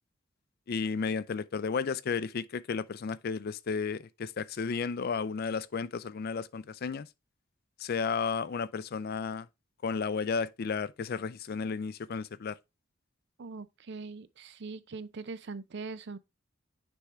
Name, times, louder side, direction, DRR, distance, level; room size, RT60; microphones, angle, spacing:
voice 1, 0.7-7.1 7.8-9.5 9.8-12.6, left 5 dB, 50° left, 0.4 m, -33 dB
voice 2, 13.4-16.2, right 4 dB, 60° right, 0.5 m, -41 dB
9.7 x 3.5 x 3.0 m
head